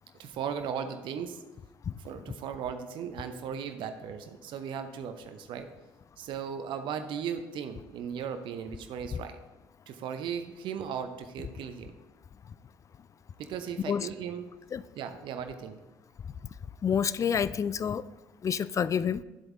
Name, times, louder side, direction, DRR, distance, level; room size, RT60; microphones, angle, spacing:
voice 1, 0.2-1.4 2.0-5.7 6.2-9.4 9.9-11.9 13.4-14.5 14.9-15.8, right 7 dB, 55° right, 8 dB, 0.7 m, -37 dB
voice 2, 16.8-18.0 18.4-19.2, left 7 dB, 30° left, 17 dB, 0.4 m, -28 dB
10.5 x 7.7 x 3.7 m, 1.1 s
figure-of-eight pair, 50°, 10 cm